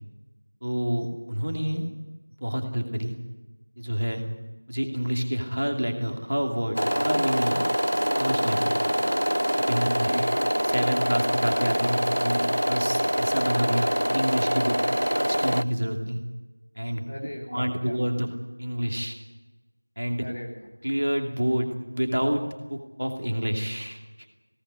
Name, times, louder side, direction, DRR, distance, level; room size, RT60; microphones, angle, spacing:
voice 1, 0.6-1.9 2.4-3.1 3.8-4.2 4.7-7.6 8.2-8.7 9.6-10.2 10.6-14.8 15.1-16.2 16.8-17.0 17.5-18.3 18.6-19.2 20.0-20.3 20.8-24.0, equal, 35° right, 4 dB, 2.7 m, -28 dB
sound 1, 6.8-15.6, equal, 70° right, 0.9 m, -25 dB
voice 2, 9.8-10.5 17.1-18.2 20.2-20.6, equal, 15° left, -1 dB, 1.6 m, -39 dB
20.5 x 18.0 x 10.0 m, 1.1 s
figure-of-eight pair, 180°, 0 cm